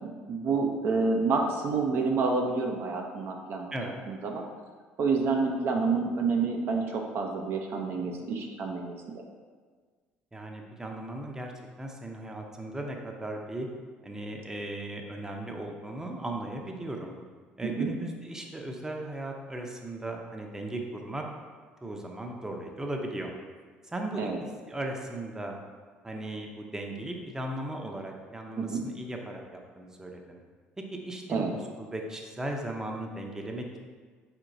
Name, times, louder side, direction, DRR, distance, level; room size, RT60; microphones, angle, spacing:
voice 1, 0.0-4.4 5.0-9.2 17.6-17.9 24.2-24.4 28.6-28.8 31.3-31.5, right 4 dB, 55° right, 2 dB, 0.6 m, -29 dB
voice 2, 10.3-11.5 11.8-13.7 14.0-17.2 17.6-21.2 21.8-23.4 23.8-24.3 24.7-25.6 26.0-30.4 30.9-33.8, right 1 dB, 15° right, 1 dB, 0.6 m, -37 dB
4.6 x 4.4 x 2.6 m, 1.5 s
supercardioid pair, 80°, 4 cm